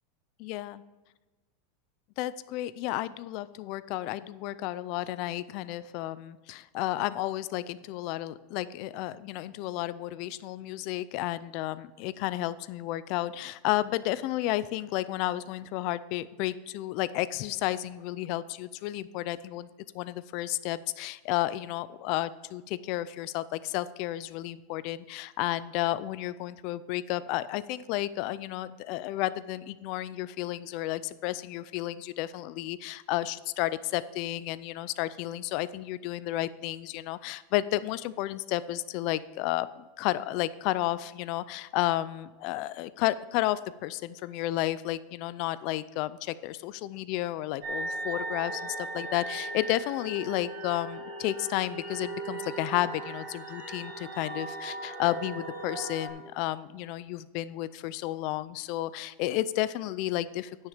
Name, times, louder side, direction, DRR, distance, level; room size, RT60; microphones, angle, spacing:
voice 1, 0.4-0.8 2.2-19.7 19.9-60.6, left 15 dB, 50° left, 16 dB, 0.4 m, -32 dB
sound 1, 47.6-56.1, right 2 dB, 45° right, 2.3 m, -38 dB
10.0 x 6.5 x 5.1 m, 1.2 s
supercardioid pair, 155°, 0 cm